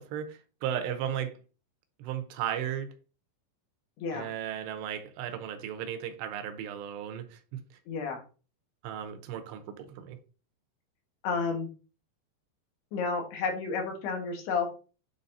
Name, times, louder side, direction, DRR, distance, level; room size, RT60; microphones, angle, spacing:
voice 1, 0.0-1.4 2.0-2.9 4.1-7.6 8.8-10.2, right 9 dB, 85° right, 3.0 m, -35 dB
voice 2, 4.0-4.3 7.9-8.2 11.2-11.7 12.9-14.7, left 5 dB, 75° left, 3.6 m, -31 dB
10.0 x 4.1 x 2.7 m
omnidirectional pair, 4.8 m